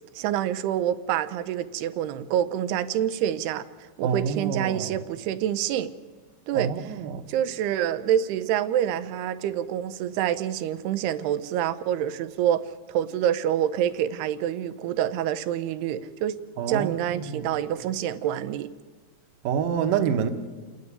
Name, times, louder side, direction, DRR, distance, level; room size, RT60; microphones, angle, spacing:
voice 1, 0.2-5.9 6.5-6.9 7.3-16.4 16.7-18.7, right 10 dB, 85° right, 12 dB, 2.8 m, -27 dB
voice 2, 4.0-5.0 6.5-7.2 16.6-17.5 19.4-20.3, right 7 dB, 70° right, 5 dB, 2.5 m, -27 dB
28.5 x 9.6 x 9.8 m, 1.4 s
omnidirectional pair, 4.6 m